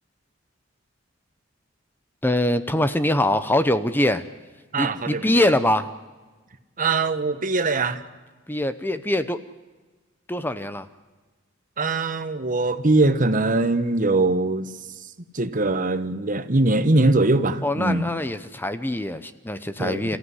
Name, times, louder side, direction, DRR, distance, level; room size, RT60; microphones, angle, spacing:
voice 1, 2.2-4.2 4.8-5.9 8.5-9.4 10.3-10.9 17.6-20.2, left 1 dB, 10° left, 0.8 m, -23 dB
voice 2, 4.7-5.5 6.8-8.0 11.8-14.7 15.3-18.1 19.8-20.2, right 2 dB, 45° right, 1.3 m, -22 dB
28.5 x 15.5 x 9.8 m
head